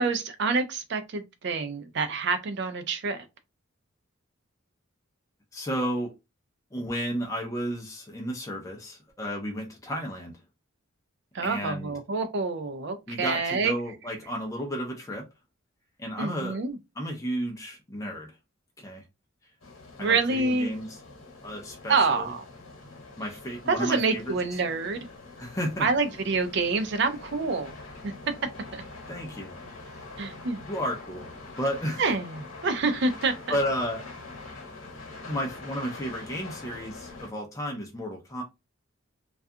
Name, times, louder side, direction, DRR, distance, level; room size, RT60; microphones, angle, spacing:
voice 1, 0.0-3.3 11.3-13.7 16.2-16.8 20.0-20.7 21.9-22.4 23.7-25.1 25.8-27.7 28.0-28.1 28.7-28.8 30.2-30.7 32.0-33.6, right 4 dB, 55° right, 0.4 m, -27 dB
voice 2, 5.5-6.1 6.7-10.4 11.4-11.9 13.1-15.3 16.0-16.6 17.0-18.4 18.8-19.0 20.0-21.0 21.4-22.3 23.2-24.3 25.4-25.9 29.1-30.0 30.6-31.3 31.6-32.1 33.5-34.1 35.2-38.4, equal, 15° left, 0.5 m, -33 dB
sound 1, 19.6-37.3, left 3 dB, 85° left, 1.0 m, -44 dB
2.4 x 2.3 x 2.6 m
head